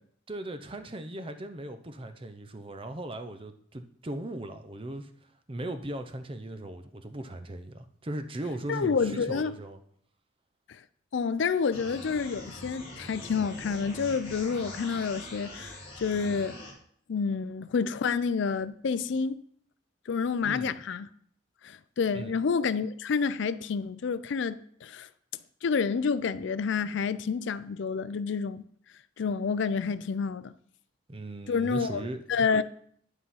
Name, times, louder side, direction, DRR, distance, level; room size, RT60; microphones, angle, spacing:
voice 1, 0.3-9.8 20.4-20.8 22.1-22.4 31.1-32.2, right 1 dB, 25° right, 0.6 m, -38 dB
voice 2, 8.7-9.5 10.7-10.8 11.1-16.5 17.1-19.4 20.1-21.1 21.6-25.1 25.6-28.6 29.2-30.5 31.5-32.6, left 5 dB, 60° left, 0.4 m, -29 dB
sound 1, 11.7-16.7, left 1 dB, 30° left, 2.1 m, -43 dB
11.0 x 3.7 x 5.6 m
head